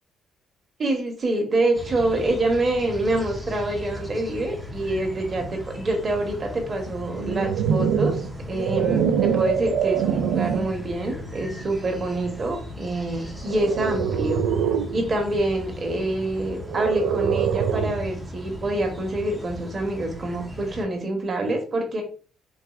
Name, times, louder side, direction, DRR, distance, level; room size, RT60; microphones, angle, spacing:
voice 1, 0.8-14.4 14.9-22.0, right 2 dB, 30° right, 3 dB, 0.8 m, -26 dB
sound 1, 1.7-20.8, left 1 dB, ahead, 0.5 m, -38 dB
sound 2, 7.1-10.8 11.4-11.7 13.5-15.0 16.7-18.1, right 8 dB, 90° right, 0.3 m, -24 dB
4.0 x 2.3 x 2.3 m, 0.38 s
cardioid pair, 155°, 0 cm